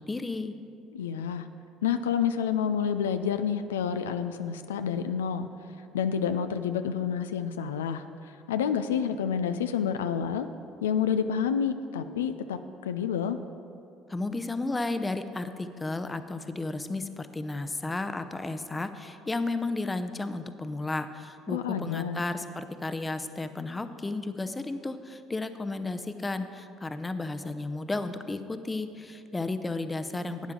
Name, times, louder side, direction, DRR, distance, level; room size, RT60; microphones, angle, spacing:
voice 1, 0.1-0.5 14.1-30.5, left 2 dB, 20° left, 10 dB, 0.7 m, -33 dB
voice 2, 0.9-1.5 1.8-5.5 5.9-10.5 10.8-13.4 21.5-22.2, left 7 dB, 85° left, 9 dB, 0.3 m, -29 dB
12.0 x 9.3 x 3.8 m, 2.6 s
hypercardioid pair, 60°, 0 cm